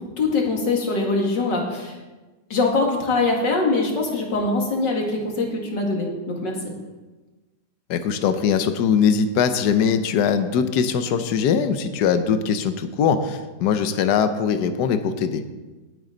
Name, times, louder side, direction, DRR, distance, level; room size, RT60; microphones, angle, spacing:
voice 1, 0.0-2.0 2.5-6.7, left 3 dB, 90° left, 0 dB, 2.7 m, -23 dB
voice 2, 7.9-15.4, left 7 dB, 70° left, 9 dB, 1.4 m, -21 dB
18.5 x 8.7 x 3.9 m, 1.2 s
omnidirectional pair, 1.9 m